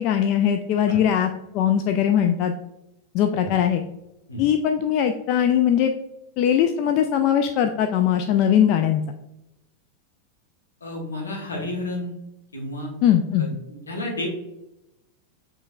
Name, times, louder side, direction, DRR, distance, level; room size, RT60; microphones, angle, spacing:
voice 1, 0.0-2.5 3.1-3.8 4.4-5.9 6.4-9.0 13.0-13.5, left 9 dB, 40° left, 5 dB, 0.3 m, -20 dB
voice 2, 10.8-12.1 12.5-12.9 13.4-14.3, left 1 dB, 75° left, -1 dB, 1.4 m, -31 dB
7.3 x 3.2 x 2.3 m, 0.88 s
figure-of-eight pair, 90°, 0 cm